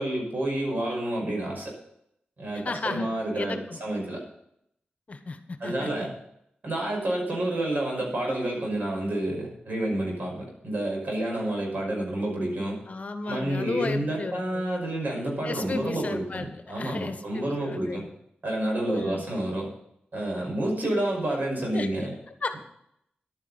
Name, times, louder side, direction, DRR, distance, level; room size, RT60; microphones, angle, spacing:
voice 1, 0.0-1.7 2.4-4.2 5.6-6.1 6.6-12.8 13.3-18.0 18.4-19.7 20.1-22.1, right 1 dB, 60° right, -1 dB, 5.8 m, -29 dB
voice 2, 2.5-3.1 3.3-3.8 5.1-6.1 12.9-14.7 15.4-18.1 18.9-19.2 21.7-22.6, left 3 dB, 45° left, 8 dB, 1.2 m, -34 dB
11.5 x 9.6 x 5.7 m, 0.75 s
wide cardioid pair, 90°, 3 cm